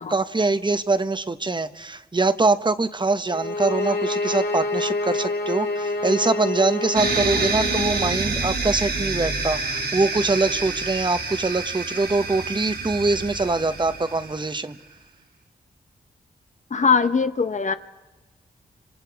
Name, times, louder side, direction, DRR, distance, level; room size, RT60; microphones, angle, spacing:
voice 1, 0.1-14.8, right 3 dB, 30° right, 11 dB, 1.1 m, -23 dB
sound 1, 3.3-8.2, left 2 dB, 75° left, 2.4 m, -27 dB
sound 2, 6.9-14.5, right 4 dB, 85° right, 4.4 m, -28 dB
voice 2, 16.7-17.7, left 5 dB, 45° left, 9 dB, 0.8 m, -21 dB
29.5 x 26.0 x 4.8 m, 1.2 s
cardioid pair, 70°, 17 cm